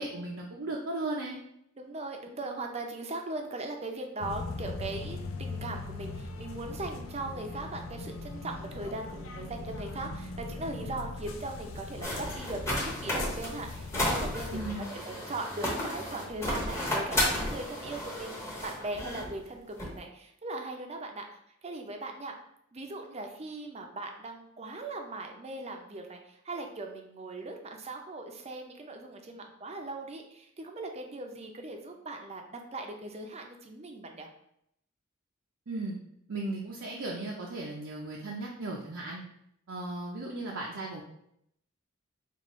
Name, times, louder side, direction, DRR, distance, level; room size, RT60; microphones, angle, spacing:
voice 1, 0.0-1.4 14.5-14.9 35.7-36.0 36.3-39.2 39.7-41.0, right 2 dB, 75° right, -3 dB, 0.6 m, -36 dB
voice 2, 1.8-18.4 18.6-21.2 21.6-22.3 22.7-34.3, right 2 dB, 30° right, 3 dB, 0.5 m, -39 dB
sound 1, 4.2-14.7, left 3 dB, 80° left, 0.4 m, -40 dB
sound 2, 12.0-19.4 19.8-20.0, left 1 dB, 15° left, 0.9 m, -33 dB
5.3 x 2.5 x 3.0 m, 0.74 s
head